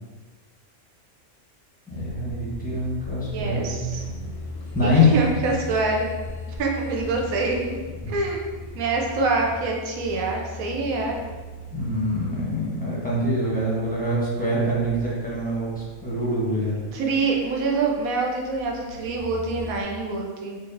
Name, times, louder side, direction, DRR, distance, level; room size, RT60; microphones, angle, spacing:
sound 1, 1.9-19.8, left 2 dB, 60° left, 0.7 m, -39 dB
voice 1, 1.9-3.8 4.7-5.1 11.7-16.8, left 1 dB, 10° left, -8 dB, 0.5 m, -24 dB
voice 2, 3.2-4.0 4.8-6.1 6.5-7.8 8.1-8.4 8.7-11.2 16.9-20.6, right 3 dB, 75° right, 0 dB, 1.0 m, -25 dB
4.1 x 2.5 x 2.5 m, 1.4 s
omnidirectional pair, 1.5 m